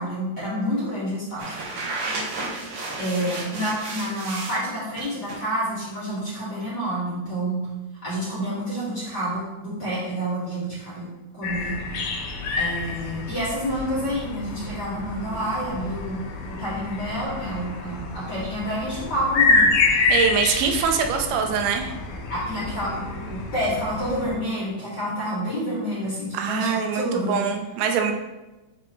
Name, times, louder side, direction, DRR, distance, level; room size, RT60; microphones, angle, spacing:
voice 1, 0.0-1.9 3.0-7.7 8.0-11.8 12.1-12.2 12.6-20.0 22.3-27.4, equal, 35° left, -10 dB, 2.0 m, -29 dB
sound 1, 1.4-4.6 5.0-5.5, right 2 dB, 55° right, 1.7 m, -32 dB
sound 2, 11.4-24.3, left 3 dB, 75° left, 2.5 m, -27 dB
voice 2, 20.1-21.9 26.3-28.1, right 6 dB, 85° right, 4 dB, 2.6 m, -23 dB
10.5 x 4.0 x 3.1 m, 1.1 s
omnidirectional pair, 4.2 m